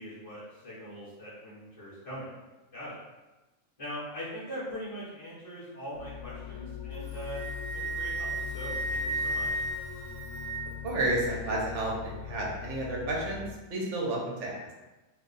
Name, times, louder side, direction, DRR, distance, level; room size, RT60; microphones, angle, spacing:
voice 1, 0.0-2.3 2.7-3.0 3.8-9.6, equal, 30° left, -11 dB, 0.9 m, -41 dB
sound 1, 5.9-13.5, left 9 dB, 75° left, 0.9 m, -41 dB
Wind instrument woodwind instrument, 6.9-10.9, right 2 dB, 90° right, 1.0 m, -34 dB
voice 2, 10.8-13.4 13.7-14.6, right 1 dB, 70° right, -3 dB, 1.0 m, -31 dB
2.6 x 2.3 x 3.8 m, 1.1 s
omnidirectional pair, 1.4 m